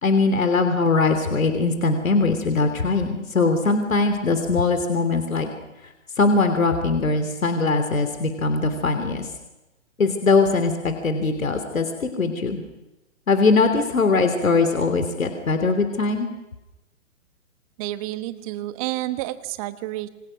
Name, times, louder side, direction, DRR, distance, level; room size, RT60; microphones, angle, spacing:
voice 1, 0.0-5.5 6.2-9.3 10.0-12.6 13.3-16.3, left 3 dB, 80° left, 7 dB, 3.2 m, -21 dB
voice 2, 17.8-20.1, right 16 dB, 25° right, 12 dB, 1.3 m, -30 dB
28.5 x 25.0 x 6.5 m, 0.99 s
figure-of-eight pair, 135°, 40 cm